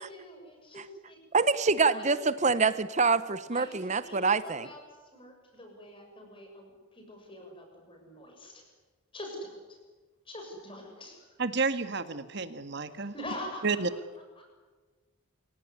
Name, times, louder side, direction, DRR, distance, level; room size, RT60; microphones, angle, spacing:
voice 1, 0.0-1.2 1.9-2.1 3.5-4.8 5.1-8.6 9.1-9.8 10.2-11.3 13.1-13.7 14.4-14.5, left 1 dB, 25° left, 3 dB, 6.7 m, -44 dB
voice 2, 1.3-4.7, right 4 dB, 35° right, 15 dB, 0.8 m, -25 dB
voice 3, 11.4-13.1 13.6-13.9, right 4 dB, 55° right, 11 dB, 1.7 m, -30 dB
27.5 x 17.0 x 9.8 m, 1.3 s
head